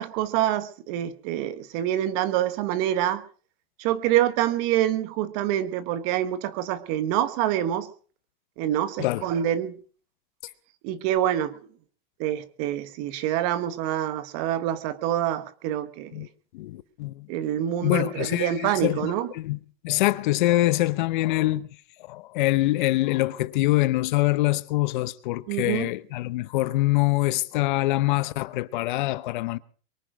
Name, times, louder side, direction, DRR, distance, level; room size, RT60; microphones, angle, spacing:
voice 1, 0.0-3.2 3.8-7.9 8.6-9.7 10.8-11.5 12.2-16.3 17.3-19.3 25.5-25.9, right 12 dB, 35° right, 1.1 m, -26 dB
voice 2, 16.5-17.3 17.8-19.6 19.8-21.7 22.1-29.6, left 18 dB, 50° left, 0.9 m, -24 dB
23.0 x 9.8 x 6.1 m
supercardioid pair, 175°, 31 cm